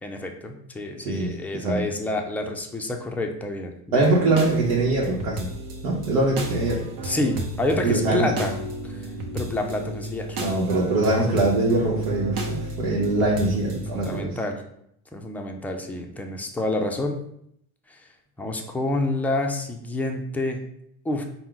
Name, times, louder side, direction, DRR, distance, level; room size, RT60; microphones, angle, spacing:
voice 1, 0.0-4.1 7.0-8.5 8.8-10.4 13.9-14.6 15.1-17.2 17.9-18.1 18.4-20.6 21.0-21.2, left 2 dB, 5° left, 2 dB, 0.3 m, -28 dB
voice 2, 1.0-1.9 3.9-5.5 5.8-6.8 7.8-8.3 10.4-14.3, right 2 dB, 85° right, -5 dB, 0.9 m, -23 dB
sound 1, 4.0-14.2, right 1 dB, 55° right, 0.9 m, -32 dB
4.4 x 2.1 x 3.7 m, 0.72 s
supercardioid pair, 90°, 42 cm